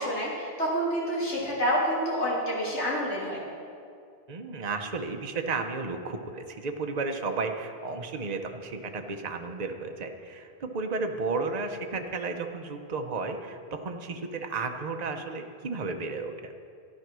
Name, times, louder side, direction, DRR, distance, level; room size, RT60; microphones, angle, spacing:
voice 1, 0.0-3.4, equal, 85° left, -5 dB, 3.5 m, -28 dB
voice 2, 4.3-16.5, right 4 dB, 40° right, 4 dB, 1.0 m, -33 dB
13.5 x 10.5 x 6.2 m, 2.3 s
omnidirectional pair, 1.1 m